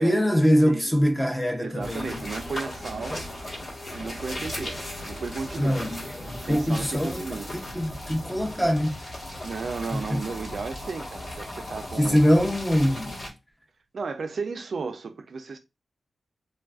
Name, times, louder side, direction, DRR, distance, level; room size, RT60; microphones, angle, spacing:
voice 1, 0.0-2.1 5.6-7.2 7.7-8.9 9.9-10.2 12.0-13.1, equal, 5° left, 0.5 m, -23 dB
voice 2, 0.6-1.0 1.5-3.2 3.9-5.8 6.4-7.5 9.4-12.2 13.9-15.6, right 4 dB, 55° right, 0.3 m, -34 dB
sound 1, 1.8-13.3, left 1 dB, 40° left, 1.2 m, -37 dB
3.2 x 2.3 x 2.3 m
wide cardioid pair, 135°, 0 cm